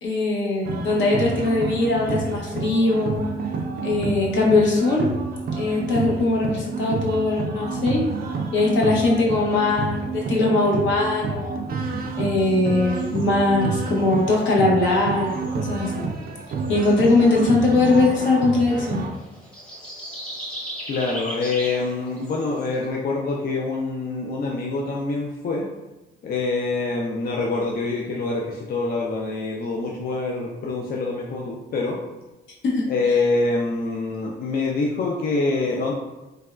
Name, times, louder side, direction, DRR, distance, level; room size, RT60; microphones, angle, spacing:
voice 1, 0.0-3.2 3.8-5.1 5.5-8.0 8.5-11.7 12.2-16.0 16.7-19.0 32.6-32.8, left 2 dB, 70° left, -2 dB, 0.8 m, -21 dB
sound 1, 0.6-19.1, right 4 dB, 50° right, 0.4 m, -29 dB
sound 2, 12.4-22.9, right 1 dB, 5° left, 0.7 m, -40 dB
voice 2, 20.9-25.6 26.2-32.0 32.9-35.9, left 3 dB, 50° left, -2 dB, 0.4 m, -25 dB
3.4 x 2.1 x 2.3 m, 1.0 s
cardioid pair, 90°, 20 cm